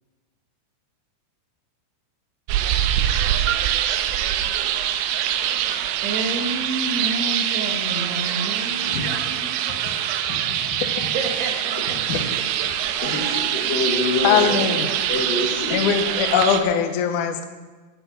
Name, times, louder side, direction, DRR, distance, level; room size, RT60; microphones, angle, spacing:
sound 1, 2.5-16.6, right 10 dB, 90° right, 3.0 m, -24 dB
voice 1, 6.0-9.7 11.1-12.0 12.3-13.0 13.6-13.8 14.2-14.6, right 2 dB, 70° right, 3 dB, 3.5 m, -30 dB
voice 2, 10.3-10.8 12.1-12.2 13.0-14.5 14.8-15.8, left 3 dB, 60° left, 1 dB, 2.7 m, -26 dB
voice 3, 14.2-14.9 15.7-17.4, left 7 dB, 80° left, 6 dB, 1.8 m, -20 dB
13.5 x 9.6 x 6.4 m, 1.3 s
omnidirectional pair, 5.2 m